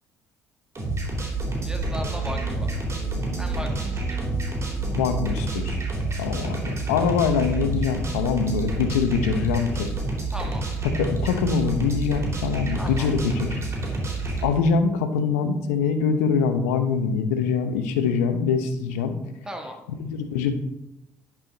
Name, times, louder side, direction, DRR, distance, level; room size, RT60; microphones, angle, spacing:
sound 1, 0.7-14.5, right 2 dB, 35° right, 3.2 m, -28 dB
sound 2, 1.4-6.0, equal, 40° left, 2.2 m, -40 dB
voice 1, 1.6-2.7 3.4-4.2 10.3-10.7 12.8-13.1 19.4-19.8, equal, 10° right, 3 dB, 1.5 m, -36 dB
voice 2, 4.9-5.8 6.2-9.9 10.8-13.6 14.4-19.1 20.0-20.5, left 6 dB, 80° left, 9 dB, 0.7 m, -24 dB
11.0 x 4.8 x 4.0 m, 0.89 s
hypercardioid pair, 50°, 8 cm